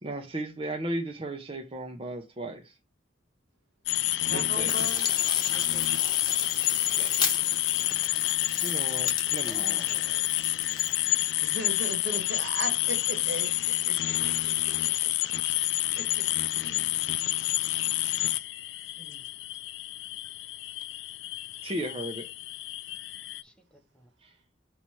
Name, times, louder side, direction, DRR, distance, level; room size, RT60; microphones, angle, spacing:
voice 1, 0.0-2.8 4.3-4.9 7.0-7.3 8.6-9.9 21.6-22.3 24.2-24.3, right 1 dB, 30° right, 0.7 m, -35 dB
sound 1, 3.9-23.4, left 16 dB, 65° left, 0.4 m, -28 dB
voice 2, 4.2-5.1 11.4-15.1 16.0-16.2 16.6-16.9 19.0-19.2, right 2 dB, 65° right, 1.5 m, -38 dB
sound 2, 4.7-11.3, left 5 dB, 25° left, 1.1 m, -35 dB
voice 3, 5.5-6.2 9.4-10.2 23.4-24.1, right 1 dB, 5° left, 0.7 m, -51 dB
5.7 x 3.1 x 5.6 m
head